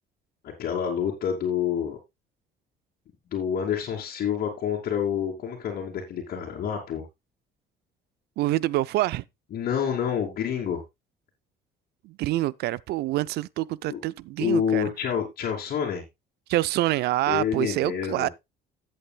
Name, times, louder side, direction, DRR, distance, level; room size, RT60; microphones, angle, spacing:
voice 1, 0.4-2.0 3.3-7.0 9.5-10.8 13.9-14.0 14.4-16.0 17.3-18.3, left 8 dB, 60° left, 2.7 m, -28 dB
voice 2, 8.4-9.2 12.0-14.9 16.5-18.3, right 16 dB, 75° right, 0.5 m, -26 dB
15.5 x 7.9 x 2.3 m
cardioid pair, 110°, 17 cm